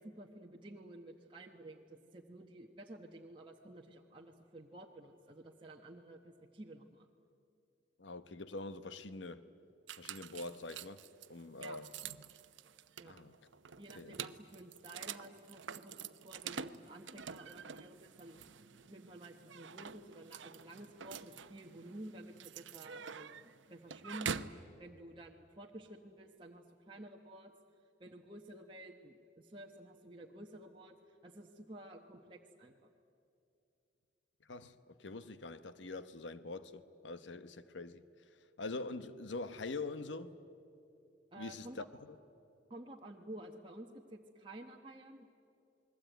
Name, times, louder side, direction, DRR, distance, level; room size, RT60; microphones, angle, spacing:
voice 1, 0.0-7.1 11.6-11.8 13.0-13.2 13.8-18.6 18.9-27.5 28.0-32.7 41.3-41.8 42.7-45.3, right 1 dB, 25° right, 1.2 m, -52 dB
voice 2, 8.0-9.4 10.0-11.0 11.3-11.9 13.0-13.3 14.0-14.1 34.5-34.7 35.0-38.0 38.6-40.3 41.4-41.8, left 3 dB, 75° left, 1.0 m, -44 dB
sound 1, 9.9-24.6, right 7 dB, 85° right, 0.8 m, -47 dB
28.5 x 21.0 x 9.2 m
head